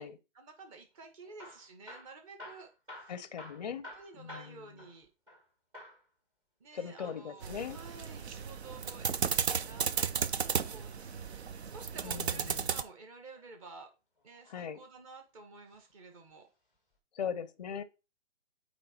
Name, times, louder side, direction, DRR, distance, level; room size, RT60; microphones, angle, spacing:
voice 1, 0.3-2.7 3.0-3.1 3.9-5.1 6.6-9.1 9.5-13.9 14.2-16.5, right 3 dB, 25° right, 1.4 m, -51 dB
Hammer / Drill, 1.2-5.5 5.7-6.1 6.9-8.3 10.0-11.3 13.0-13.4 14.2-15.0 15.7-15.9 16.2-16.3 16.9-17.0, left 1 dB, 5° right, 0.7 m, -52 dB
voice 2, 3.1-3.9 4.2-4.8 6.7-7.8 12.0-12.7 14.5-14.8 17.1-17.8, left 7 dB, 35° left, 0.6 m, -40 dB
sound 1, 7.4-12.8, right 7 dB, 55° right, 0.7 m, -34 dB
8.8 x 3.1 x 4.3 m
figure-of-eight pair, 145°, 39 cm